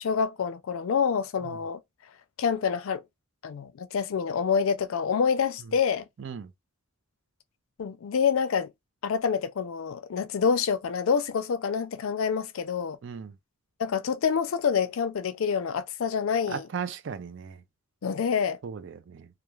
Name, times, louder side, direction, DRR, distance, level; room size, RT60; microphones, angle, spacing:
voice 1, 0.0-1.8 2.4-3.0 3.4-6.1 7.8-8.7 9.0-13.0 13.8-16.7 18.0-18.6, left 6 dB, 75° left, 0.4 m, -27 dB
voice 2, 6.2-6.5 13.0-13.3 16.5-17.6 18.6-19.3, right 6 dB, 60° right, 0.4 m, -36 dB
2.3 x 2.3 x 3.0 m
head